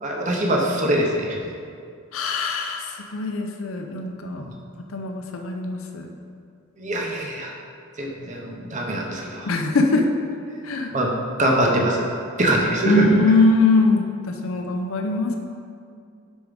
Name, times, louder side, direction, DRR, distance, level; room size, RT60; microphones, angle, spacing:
voice 1, 0.0-1.4 4.4-4.5 6.8-7.5 8.0-9.5 10.9-11.1 11.4-12.0 12.4-13.1, right 1 dB, 35° right, 0 dB, 0.7 m, -23 dB
voice 2, 2.1-4.4 4.9-6.1 9.5-10.0 10.6-10.9 12.8-15.4, left 2 dB, 80° left, 3 dB, 0.5 m, -22 dB
5.3 x 4.6 x 5.0 m, 2.3 s
head